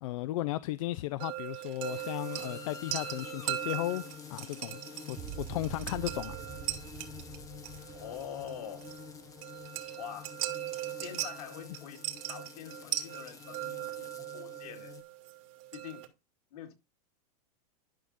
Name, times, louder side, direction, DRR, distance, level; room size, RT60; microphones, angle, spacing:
voice 1, 0.0-4.0 4.3-4.8 5.1-6.4, left 16 dB, 60° left, 0.5 m, -35 dB
sound 1, 1.2-16.1, right 14 dB, 55° right, 2.3 m, -40 dB
sound 2, 1.8-15.0, left 7 dB, 15° left, 0.9 m, -49 dB
sound 3, 5.2-9.5, right 10 dB, 20° right, 0.5 m, -46 dB
voice 2, 7.9-8.9 10.0-10.3 10.9-14.9 15.7-16.1 16.5-16.7, left 10 dB, 75° left, 2.2 m, -45 dB
11.5 x 6.3 x 2.6 m
supercardioid pair, 145°, 19 cm